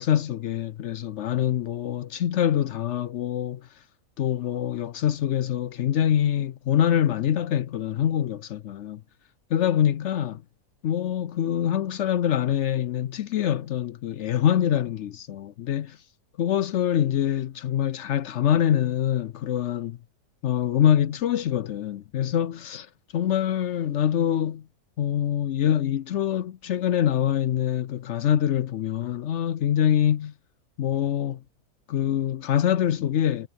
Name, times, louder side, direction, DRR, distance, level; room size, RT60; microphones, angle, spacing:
voice 1, 0.0-3.6 4.2-9.0 9.5-10.4 10.8-16.0 16.4-20.0 20.4-22.9 23.1-24.6 25.0-30.3 30.8-31.4 31.9-33.5, left 10 dB, 65° left, 0.7 m, -24 dB
omnidirectional pair, 1.7 m